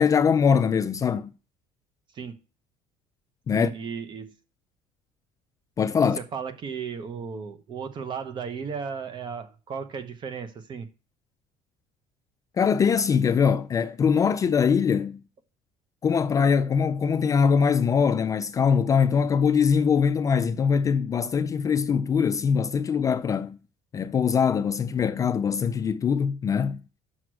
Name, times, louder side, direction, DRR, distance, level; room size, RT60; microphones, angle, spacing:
voice 1, 0.0-1.3 3.5-3.7 5.8-6.2 12.6-15.2 16.0-23.6 23.9-26.8, left 6 dB, 25° left, 0.4 m, -22 dB
voice 2, 3.5-4.3 6.2-10.9, right 6 dB, 35° right, 1.0 m, -35 dB
6.3 x 5.9 x 6.1 m
cardioid pair, 150°, 13 cm